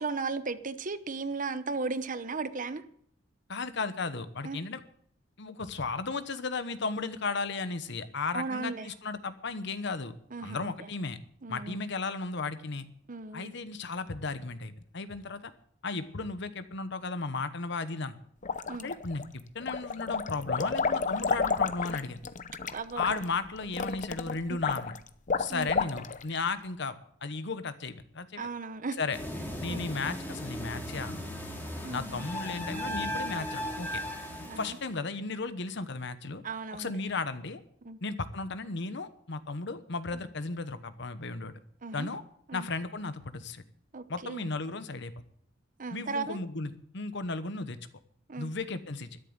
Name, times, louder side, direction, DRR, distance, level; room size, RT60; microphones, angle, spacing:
voice 1, 0.0-2.8 4.4-4.6 8.3-8.9 10.3-10.7 11.4-11.8 13.1-13.5 18.7-18.9 22.7-23.0 24.5-24.6 25.5-25.7 28.4-29.0 29.7-29.8 31.8-32.3 34.4-34.8 36.4-37.0 37.8-38.0 41.8-42.1 42.5-42.7 43.9-44.4 45.8-46.4 48.3-48.5, right 4 dB, 45° right, 13 dB, 0.9 m, -36 dB
voice 2, 3.5-4.8 5.4-10.1 10.4-11.2 11.5-12.9 13.3-15.5 15.8-18.2 18.8-22.2 23.0-25.0 25.4-27.0 27.2-28.5 29.0-29.2 29.6-31.3 31.9-34.0 34.6-36.4 36.7-37.6 38.0-41.5 41.9-42.2 42.5-43.6 44.1-45.1 45.9-47.8 48.4-49.2, left 3 dB, 65° left, 11 dB, 1.1 m, -35 dB
sound 1, 18.4-19.2 19.6-26.3, left 5 dB, 40° left, 0.7 m, -31 dB
sound 2, 29.1-34.9, equal, 10° left, 2.6 m, -37 dB
12.5 x 10.5 x 8.0 m, 0.65 s
head